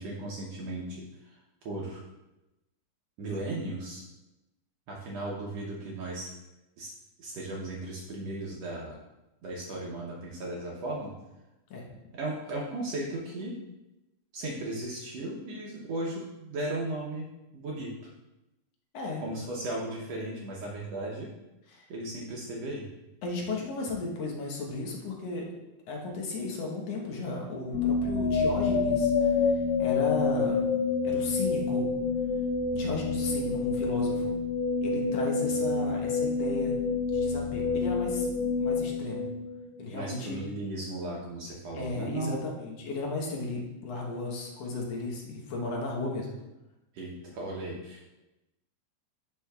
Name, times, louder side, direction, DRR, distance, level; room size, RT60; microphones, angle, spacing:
voice 1, 0.0-1.4 1.6-2.0 3.2-4.0 4.9-6.3 6.8-6.9 7.2-9.0 9.4-11.1 12.1-13.5 14.3-17.3 17.5-17.9 19.2-21.3 21.9-22.9 39.9-42.3 46.9-48.0, right 2 dB, 75° right, -3 dB, 1.5 m, -36 dB
voice 2, 23.2-25.5 25.9-30.6 31.0-31.9 32.7-34.3 34.8-36.8 37.1-38.3 38.6-39.3 39.8-40.4 41.7-46.3, left 3 dB, 65° left, -1 dB, 1.7 m, -35 dB
sound 1, 27.7-39.8, left 4 dB, 85° left, 2.3 m, -28 dB
10.0 x 5.4 x 2.3 m, 0.97 s
omnidirectional pair, 4.0 m